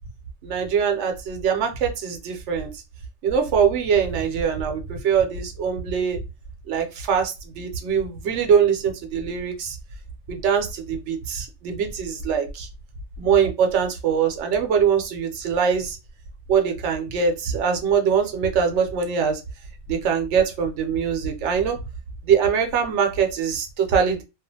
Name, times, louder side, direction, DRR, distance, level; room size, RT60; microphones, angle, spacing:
voice 1, 0.4-2.8 3.2-6.2 6.7-9.8 10.3-12.7 13.2-16.0 16.5-19.4 19.9-21.8 22.2-24.2, right 7 dB, 75° right, 4 dB, 0.9 m, -22 dB
2.4 x 2.4 x 2.6 m, 0.27 s
omnidirectional pair, 1.2 m